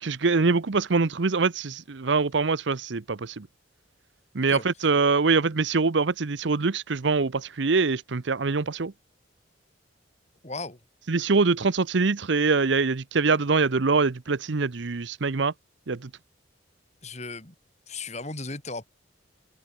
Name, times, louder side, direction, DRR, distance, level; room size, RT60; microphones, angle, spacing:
voice 1, 0.0-3.5 4.3-8.9 11.1-15.5 15.9-16.1, right 4 dB, 70° right, 0.8 m, -24 dB
voice 2, 10.4-10.8 17.0-17.5 17.9-18.8, left 3 dB, 35° left, 4.4 m, -36 dB
open air
head